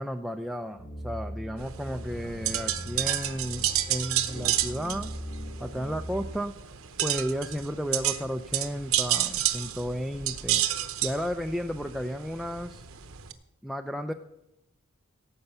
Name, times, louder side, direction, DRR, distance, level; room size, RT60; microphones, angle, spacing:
voice 1, 0.0-5.1 5.6-6.5 7.0-10.7 11.0-12.8 13.6-14.1, equal, ahead, 5 dB, 0.4 m, -33 dB
sound 1, 0.8-6.4, equal, 20° left, 1.4 m, -40 dB
sound 2, 1.6-13.3, right 12 dB, 70° right, 0.9 m, -31 dB
17.5 x 8.0 x 5.5 m, 0.91 s
head